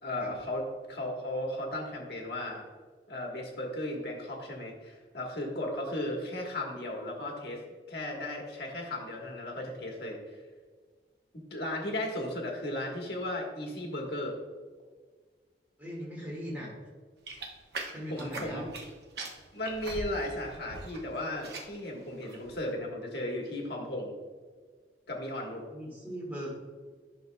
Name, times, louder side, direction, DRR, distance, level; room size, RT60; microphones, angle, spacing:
voice 1, 0.0-2.6 3.1-7.6 7.9-10.2 11.5-14.4 18.1-18.7 19.5-24.1 25.1-25.6, left 1 dB, 70° left, 0 dB, 1.3 m, -35 dB
voice 2, 15.8-16.7 17.9-18.6 25.7-26.5, equal, 10° right, -5 dB, 1.8 m, -39 dB
sound 1, 17.3-18.9 19.2-21.0 21.3-21.8 22.2-22.5, right 3 dB, 70° right, 0.9 m, -41 dB
10.5 x 6.1 x 2.2 m, 1.5 s
head